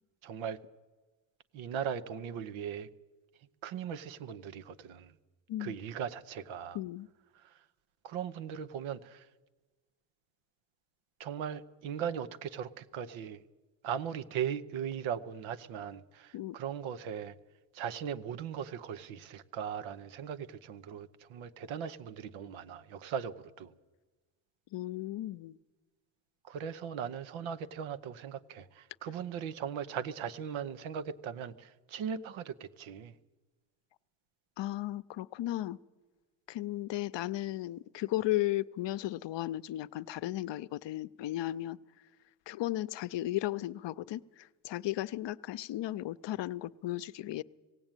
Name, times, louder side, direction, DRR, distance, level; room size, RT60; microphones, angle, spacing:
voice 1, 0.2-0.6 1.5-2.9 3.6-5.1 5.6-6.8 7.4-7.5 8.0-9.3 11.2-13.4 13.8-17.3 17.7-23.7 26.4-33.1, right 8 dB, 90° right, 1.0 m, -38 dB
voice 2, 6.7-7.1 16.3-16.6 24.7-25.6 34.6-35.8 36.5-41.8 42.5-47.4, left 15 dB, 65° left, 0.7 m, -35 dB
18.0 x 16.0 x 9.0 m
cardioid pair, 75°, 46 cm